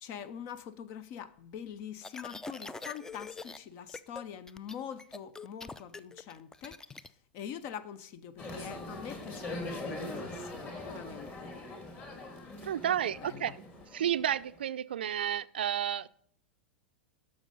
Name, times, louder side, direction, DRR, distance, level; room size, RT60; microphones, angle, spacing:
voice 1, 0.0-6.8 7.3-11.5 12.8-13.5, left 8 dB, 45° left, 0.7 m, -44 dB
sound 1, 2.0-3.6 3.9-4.2 4.5-7.1, left 3 dB, 10° left, 0.5 m, -44 dB
sound 2, 8.4-14.6, left 2 dB, 30° left, 2.7 m, -42 dB
voice 2, 12.6-13.5 13.9-16.1, right 10 dB, 70° right, 0.4 m, -31 dB
12.0 x 6.4 x 5.4 m
figure-of-eight pair, 95°, 6 cm